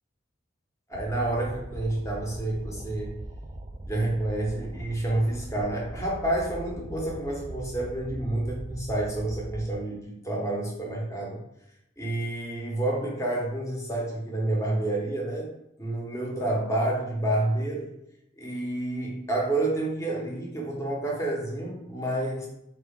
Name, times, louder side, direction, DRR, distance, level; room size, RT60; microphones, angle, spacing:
voice 1, 0.9-3.2 3.9-11.4 12.0-15.5 15.8-17.9 18.4-22.5, right 1 dB, 15° left, -2 dB, 0.9 m, -29 dB
sound 1, 0.9-9.8, right 1 dB, 25° right, 0.3 m, -40 dB
4.0 x 2.9 x 3.5 m, 0.82 s
head